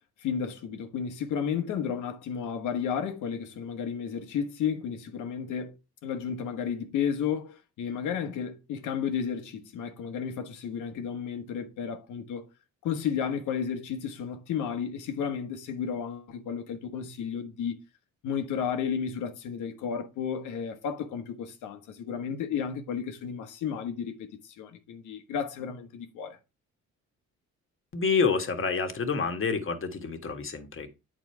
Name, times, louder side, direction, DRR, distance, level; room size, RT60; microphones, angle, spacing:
voice 1, 0.2-5.8 6.0-12.4 12.8-17.8 18.2-26.4, left 7 dB, 85° left, 1.5 m, -32 dB
voice 2, 27.9-30.9, left 5 dB, 45° left, 1.7 m, -28 dB
8.8 x 4.4 x 4.5 m
cardioid pair, 90°, 30 cm